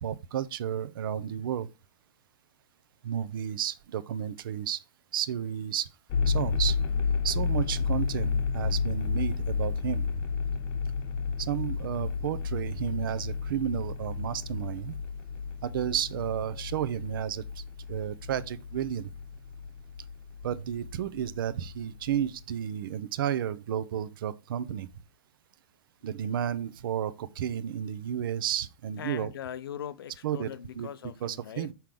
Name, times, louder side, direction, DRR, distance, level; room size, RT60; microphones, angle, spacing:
voice 1, 0.0-1.7 3.0-4.8 5.1-5.9 6.3-6.8 7.2-10.1 11.4-14.9 15.6-17.6 17.9-19.1 20.4-24.9 26.0-29.3 30.2-30.5 30.8-30.9 31.2-31.7, right 9 dB, 70° right, 0.7 m, -32 dB
sound 1, 6.1-22.4, left 5 dB, 40° left, 0.8 m, -32 dB
voice 2, 29.0-31.7, left 9 dB, 85° left, 0.5 m, -40 dB
6.1 x 5.7 x 3.4 m
hypercardioid pair, 135°, 12 cm